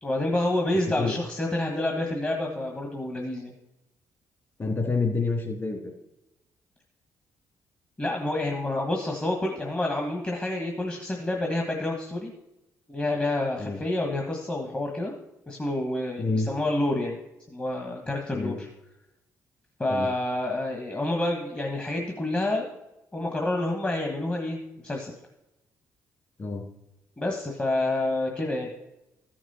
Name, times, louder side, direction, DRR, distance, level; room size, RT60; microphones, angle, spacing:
voice 1, 0.0-3.5 8.0-12.3 12.9-15.1 15.5-17.2 17.5-18.7 19.8-22.7 23.1-25.1 27.2-28.7, left 1 dB, 20° left, 1 dB, 1.4 m, -28 dB
voice 2, 4.6-5.8 13.6-13.8 16.2-16.5 18.3-18.6 19.9-20.1 26.4-26.6, left 3 dB, 40° left, 1 dB, 2.8 m, -27 dB
13.0 x 6.1 x 4.2 m, 0.93 s
cardioid pair, 75°, 7 cm